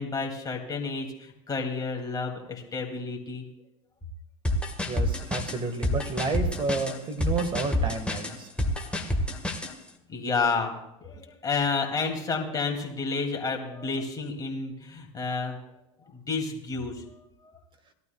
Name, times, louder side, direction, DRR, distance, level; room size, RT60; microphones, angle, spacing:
voice 1, 0.0-3.5 8.7-9.5 10.1-10.7 11.0-15.6 16.1-17.5, left 4 dB, 20° left, 2 dB, 2.5 m, -31 dB
sound 1, 4.4-9.7, left 1 dB, 5° left, 1.5 m, -28 dB
voice 2, 4.9-8.5, right 3 dB, 30° right, 7 dB, 1.7 m, -30 dB
18.5 x 12.0 x 2.3 m, 0.87 s
hypercardioid pair, 90°, 16 cm